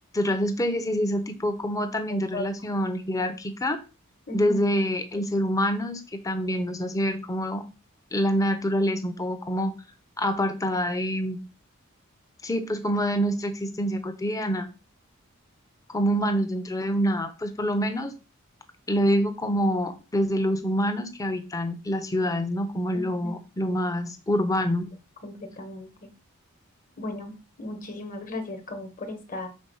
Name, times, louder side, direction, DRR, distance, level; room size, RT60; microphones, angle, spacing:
voice 1, 0.1-3.8 4.3-7.6 8.1-9.7 10.2-11.4 12.4-14.7 15.9-18.1 18.9-24.9, equal, 15° left, 9 dB, 0.7 m, -26 dB
voice 2, 2.1-2.5 4.3-4.6 22.9-23.3 25.2-26.1 27.0-29.5, left 2 dB, 40° left, 6 dB, 1.2 m, -36 dB
5.3 x 3.9 x 5.5 m, 0.31 s
head